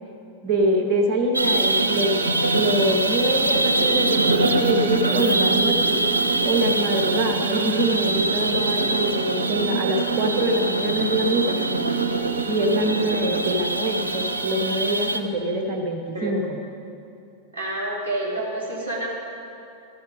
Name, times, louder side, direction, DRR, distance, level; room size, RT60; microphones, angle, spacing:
voice 1, 0.4-5.9 6.4-11.6 12.5-16.6, right 1 dB, 30° right, 2 dB, 1.2 m, -24 dB
sound 1, 1.3-15.2, right 2 dB, 75° right, 0.7 m, -23 dB
voice 2, 17.5-19.1, right 2 dB, 90° left, -5 dB, 3.0 m, -28 dB
13.0 x 10.0 x 5.1 m, 2.6 s
figure-of-eight pair, 90°, 0 cm